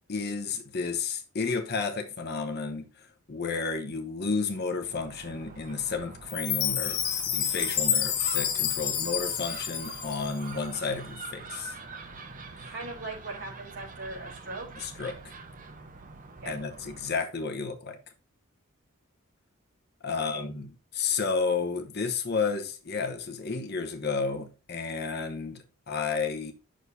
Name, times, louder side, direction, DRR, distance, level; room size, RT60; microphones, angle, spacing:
voice 1, 0.1-7.0 7.3-11.8 14.8-15.2 16.4-18.0 20.0-26.5, left 4 dB, 45° left, 1.0 m, -32 dB
Gull seagull, 4.8-17.3, right 4 dB, 35° right, 0.8 m, -45 dB
Chime, 6.3-10.5, left 9 dB, 75° left, 1.4 m, -29 dB
voice 2, 12.7-14.7 16.4-16.6 20.3-20.5, right 2 dB, 55° right, 2.8 m, -39 dB
9.0 x 6.3 x 2.7 m
head